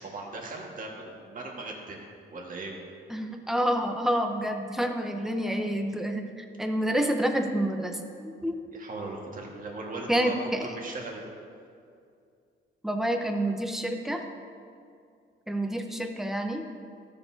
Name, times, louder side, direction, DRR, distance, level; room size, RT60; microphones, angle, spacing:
voice 1, 0.0-2.0 2.3-2.7 8.7-11.2, right 2 dB, 45° right, -1 dB, 1.8 m, -38 dB
voice 2, 3.1-8.6 10.1-10.7 12.8-14.2 15.5-16.7, right 1 dB, ahead, 4 dB, 0.9 m, -28 dB
13.5 x 6.9 x 2.8 m, 2.3 s
cardioid pair, 90°, 20 cm